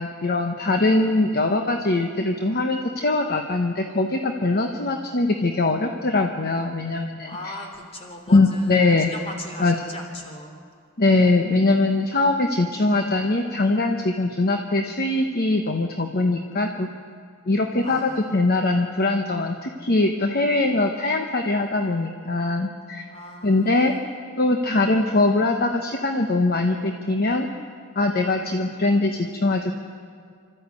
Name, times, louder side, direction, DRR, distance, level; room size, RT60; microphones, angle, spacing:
voice 1, 0.0-7.6 8.3-9.1 9.6-9.7 11.0-16.9 17.5-23.0 23.4-24.0 24.4-27.5 27.9-29.7, left 2 dB, 45° left, 4 dB, 1.0 m, -22 dB
voice 2, 7.3-10.6 17.8-18.3 23.1-24.0, left 1 dB, 30° left, 2 dB, 3.1 m, -39 dB
27.5 x 13.5 x 8.3 m, 2.2 s
head